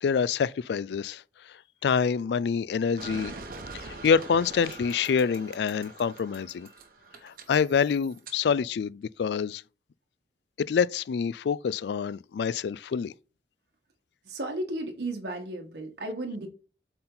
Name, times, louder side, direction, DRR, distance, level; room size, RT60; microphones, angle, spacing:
voice 1, 0.0-1.2 1.8-3.3 3.7-6.7 7.2-9.6 10.6-13.1, left 6 dB, 70° left, 0.3 m, -26 dB
sound 1, 3.0-8.4, right 3 dB, 50° right, 1.0 m, -44 dB
voice 2, 14.2-16.5, right 2 dB, 70° right, 1.4 m, -34 dB
7.6 x 4.4 x 3.9 m
head